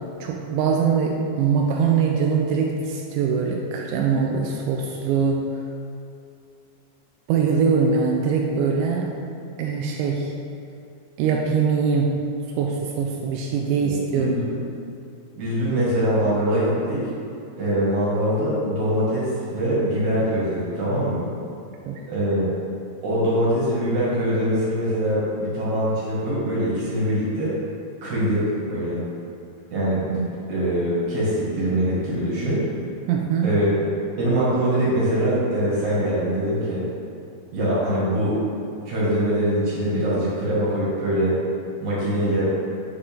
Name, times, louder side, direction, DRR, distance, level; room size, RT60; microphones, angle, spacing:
voice 1, 0.2-5.5 7.3-9.1 9.6-10.3 11.2-12.2 12.6-14.3 21.9-22.0 33.1-33.6, right 5 dB, 85° right, 0 dB, 2.8 m, -22 dB
voice 2, 13.8-14.6 15.4-17.1 17.6-21.3 22.1-22.5 23.0-27.6 28.0-29.0 29.7-30.2 30.5-32.7 33.4-33.7 34.2-36.8 37.5-38.4 38.9-41.3 41.8-42.5, equal, 50° right, -8 dB, 2.9 m, -23 dB
8.5 x 7.9 x 3.7 m, 2.6 s
omnidirectional pair, 5.5 m